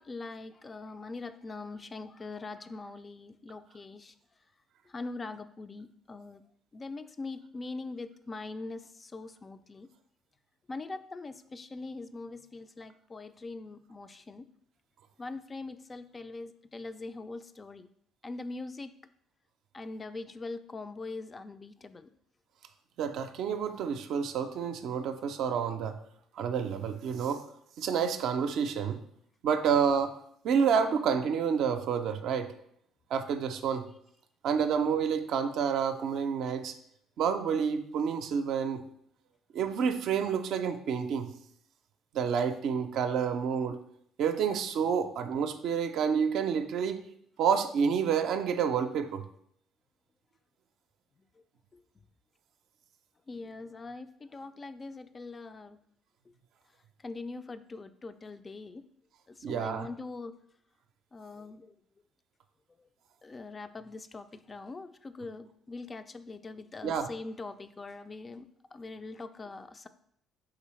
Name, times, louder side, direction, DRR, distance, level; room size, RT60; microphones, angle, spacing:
voice 1, 0.0-4.1 4.9-6.4 6.7-9.9 10.7-14.5 15.2-17.9 18.2-18.9 19.7-22.1 51.4-51.5 51.7-51.8 53.3-55.8 57.0-58.8 59.3-60.3 61.1-61.7 62.8-62.9 63.2-69.9, left 3 dB, 35° left, 11 dB, 0.3 m, -42 dB
voice 2, 23.0-26.0 26.3-27.5 27.8-29.0 29.4-30.2 30.4-32.5 33.1-33.9 34.4-36.7 37.2-38.8 39.5-41.3 42.1-43.8 44.2-47.0 47.4-49.3 59.4-59.9 66.8-67.1, right 7 dB, 65° right, 7 dB, 0.4 m, -29 dB
5.0 x 3.3 x 3.1 m, 0.69 s
hypercardioid pair, 50°, 0 cm